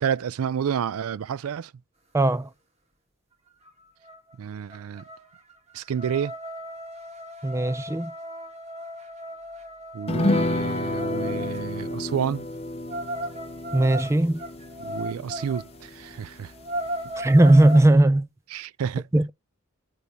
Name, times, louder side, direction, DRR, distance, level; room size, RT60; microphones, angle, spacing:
voice 1, 0.0-1.7 4.4-5.0 5.7-6.3 9.9-12.5 14.8-16.5 18.5-19.1, right 7 dB, 80° right, 0.4 m, -30 dB
voice 2, 2.1-2.5 7.4-8.1 13.7-14.4 17.2-18.3 19.1-19.3, right 1 dB, 15° right, 0.4 m, -18 dB
sound 1, 3.7-3.8 4.0-4.3 4.7-11.6 12.9-15.7 16.1-16.2 16.5-17.9, equal, 30° right, 1.9 m, -36 dB
sound 2, 10.1-16.9 17.2-17.3 17.6-17.8, left 1 dB, 30° left, 0.8 m, -30 dB
8.4 x 3.8 x 6.0 m
head